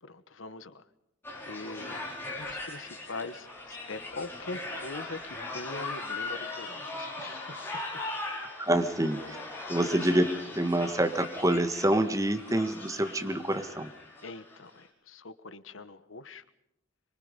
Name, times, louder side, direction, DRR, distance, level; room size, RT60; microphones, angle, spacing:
voice 1, 0.0-0.9 1.5-2.0 2.3-8.0 9.7-10.1 14.2-16.4, left 3 dB, 80° left, 13 dB, 1.3 m, -42 dB
sound 1, 1.2-14.6, left 2 dB, 10° left, 5.6 m, -39 dB
voice 2, 8.6-9.4 9.7-10.2 10.5-13.9, right 1 dB, 15° right, 8 dB, 1.6 m, -27 dB
25.0 x 23.5 x 5.3 m, 0.79 s
head